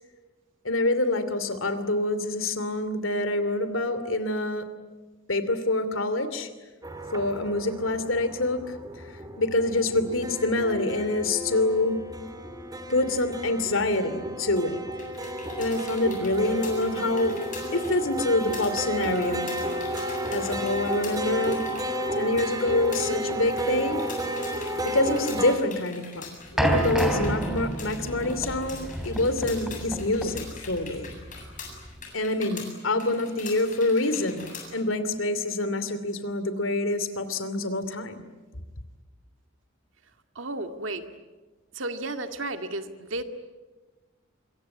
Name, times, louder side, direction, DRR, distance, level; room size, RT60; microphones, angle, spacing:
voice 1, 0.6-4.7 5.3-6.5 7.1-9.1 9.4-12.0 12.9-14.8 15.6-17.4 17.7-19.5 20.3-21.7 22.1-24.1 24.8-31.1 32.1-38.2, left 2 dB, 85° left, 12 dB, 2.8 m, -26 dB
sound 1, 6.8-25.6, equal, 20° right, 2.6 m, -32 dB
sound 2, 14.9-34.7, left 5 dB, 40° left, 7.9 m, -44 dB
sound 3, 26.6-32.0, right 1 dB, ahead, 3.5 m, -29 dB
voice 2, 40.4-41.0 41.7-43.2, right 2 dB, 70° right, 7 dB, 2.2 m, -33 dB
25.5 x 23.0 x 9.7 m, 1.2 s
head